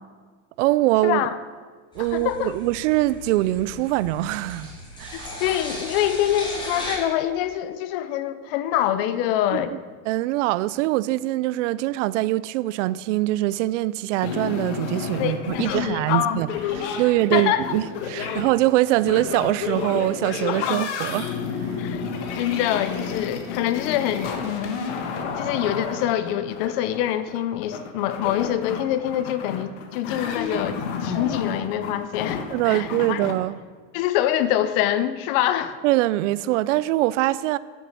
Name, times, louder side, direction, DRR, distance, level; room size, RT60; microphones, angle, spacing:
voice 1, 0.6-1.3 1.9-4.7 5.0-5.3 9.5-9.6 10.1-16.5 16.8-21.3 32.5-33.6 35.8-37.6, right 16 dB, 70° right, 0.6 m, -23 dB
sound 1, 1.9-7.0, left 1 dB, 10° left, 2.4 m, -36 dB
voice 2, 2.0-2.5 5.1-9.7 15.2-16.4 17.3-17.6 18.2-18.4 20.5-20.9 21.8-22.0 22.4-24.4 25.4-33.2 33.9-35.8, left 12 dB, 45° left, 0.8 m, -25 dB
Damaged Ship's Recorder, 14.2-33.3, left 6 dB, 65° left, 1.7 m, -31 dB
10.0 x 7.3 x 8.0 m
supercardioid pair, 170°, 38 cm